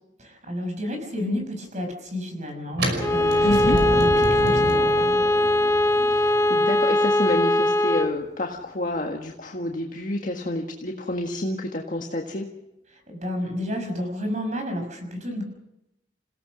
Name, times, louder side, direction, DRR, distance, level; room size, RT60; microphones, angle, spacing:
voice 1, 0.2-5.1 12.9-15.4, equal, 40° right, 5 dB, 6.0 m, -31 dB
sound 1, 2.7-8.6, equal, 65° right, 5.6 m, -30 dB
Bowed string instrument, 3.0-8.2, left 1 dB, 20° left, 1.0 m, -21 dB
voice 2, 3.4-3.8 6.1-12.4, left 1 dB, 45° left, 1 dB, 1.7 m, -29 dB
28.5 x 17.0 x 6.3 m, 0.90 s
head